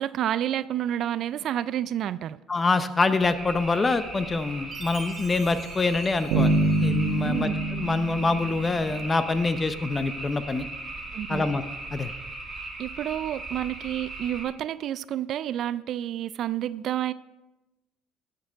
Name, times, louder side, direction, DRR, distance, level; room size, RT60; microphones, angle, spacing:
voice 1, 0.0-2.4 7.2-7.5 11.1-11.4 12.8-17.1, right 11 dB, 60° right, 17 dB, 0.3 m, -29 dB
voice 2, 2.5-6.5 6.8-7.5 7.8-10.7 11.3-11.6 11.9-12.1, left 3 dB, 25° left, 11 dB, 0.8 m, -25 dB
sound 1, 3.2-14.4, right 2 dB, 25° right, 2.4 m, -38 dB
Chime, 4.7-7.2, right 5 dB, 45° right, 1.3 m, -46 dB
Bass guitar, 6.3-9.4, right 2 dB, 80° right, 1.4 m, -26 dB
12.5 x 6.6 x 4.6 m, 1.0 s
supercardioid pair, 90°, 0 cm